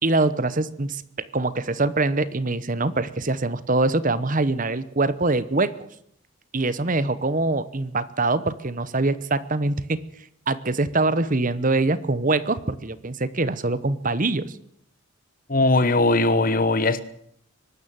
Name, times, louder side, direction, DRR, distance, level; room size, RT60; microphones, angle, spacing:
voice 1, 0.0-5.7 6.5-10.0 10.5-14.6, right 2 dB, 35° right, 1.0 m, -24 dB
voice 2, 15.5-17.0, left 2 dB, 40° left, 1.2 m, -19 dB
23.5 x 12.5 x 9.1 m
head